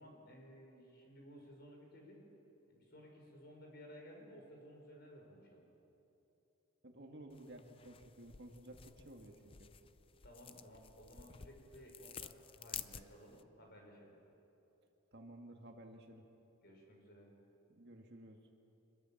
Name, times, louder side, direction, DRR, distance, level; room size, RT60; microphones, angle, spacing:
voice 1, 0.0-2.2 2.7-5.7 10.2-14.1 16.6-17.3, equal, 50° left, 1 dB, 5.5 m, -57 dB
voice 2, 6.8-9.7 15.1-16.2 17.7-18.4, right 1 dB, 50° right, 2 dB, 2.1 m, -54 dB
sound 1, 7.3-13.4, left 8 dB, 25° left, 0.4 m, -52 dB
25.5 x 21.5 x 7.3 m, 2.9 s
head